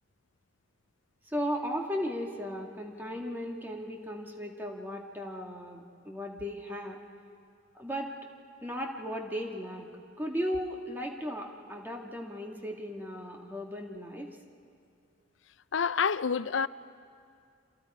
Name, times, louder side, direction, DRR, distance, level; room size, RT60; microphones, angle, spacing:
voice 1, 1.3-7.0 7.7-8.1 8.6-9.9 10.2-14.3, equal, 10° right, 1.9 m, -36 dB
voice 2, 15.7-16.7, left 6 dB, 80° left, 0.5 m, -27 dB
29.0 x 26.5 x 4.9 m
head